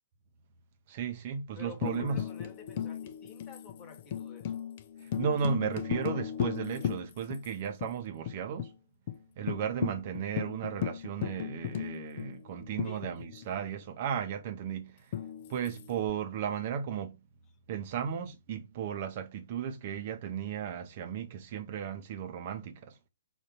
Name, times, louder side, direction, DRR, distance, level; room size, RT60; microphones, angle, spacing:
voice 1, 0.9-2.2 5.0-8.7 9.4-15.2 15.5-17.2 17.7-23.0, right 7 dB, 40° right, 0.7 m, -35 dB
voice 2, 1.5-4.6 12.8-13.0, left 5 dB, 25° left, 1.2 m, -50 dB
Tambourine, 1.8-7.5 7.8-7.9 8.3-8.7 9.1-9.2 9.5-13.6 15.1-16.1, left 9 dB, 40° left, 0.6 m, -36 dB
3.8 x 2.7 x 4.2 m
figure-of-eight pair, 120°, 0 cm